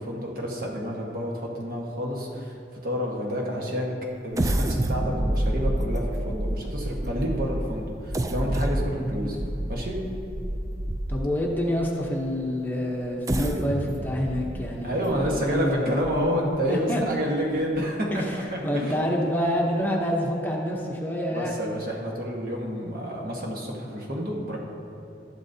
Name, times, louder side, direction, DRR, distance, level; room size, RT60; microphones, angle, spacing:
voice 1, 0.0-2.5 2.8-3.9 4.2-9.4 9.7-10.0 14.8-18.2 18.5-19.1 21.3-24.6, equal, 55° right, -2 dB, 1.4 m, -29 dB
sound 1, 4.3-11.5 12.1-12.2 13.0-16.6 17.0-17.1 17.6-17.8, right 1 dB, 20° right, 0.3 m, -29 dB
voice 2, 11.1-15.9 16.7-17.0 18.1-21.6, equal, 10° left, -2 dB, 0.8 m, -27 dB
11.5 x 11.0 x 2.8 m, 2.7 s
head